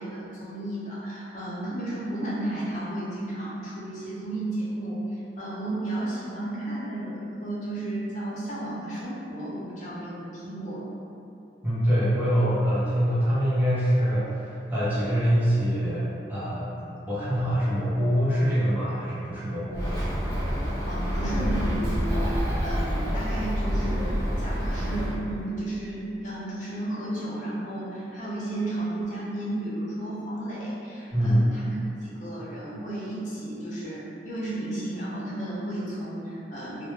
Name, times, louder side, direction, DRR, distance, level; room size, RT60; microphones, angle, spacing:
voice 1, 0.0-10.9 20.9-31.7 32.0-36.9, right 1 dB, 40° left, -8 dB, 0.6 m, -33 dB
voice 2, 11.6-20.1 31.1-31.4, equal, 10° right, -11 dB, 0.6 m, -24 dB
Bird, 19.7-25.2, equal, 10° left, 1.1 m, -27 dB
2.1 x 2.0 x 3.0 m, 2.7 s
head